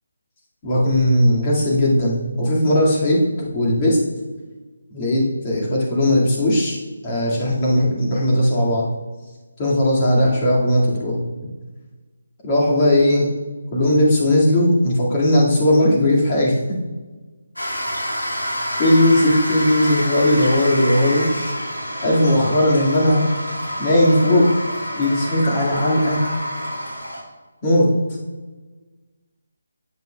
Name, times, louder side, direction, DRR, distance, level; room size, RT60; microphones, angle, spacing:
voice 1, 0.6-4.0 4.9-6.8 7.0-8.9 9.6-11.2 12.4-13.3 13.7-16.6 18.8-21.3 22.0-23.3 23.8-24.5 24.9-26.2 27.6-27.9, left 1 dB, 25° left, -4 dB, 2.1 m, -17 dB
sound 1, 17.6-27.2, equal, 85° left, 2.5 m, -28 dB
10.5 x 8.1 x 2.3 m, 1.3 s
figure-of-eight pair, 150°, 0 cm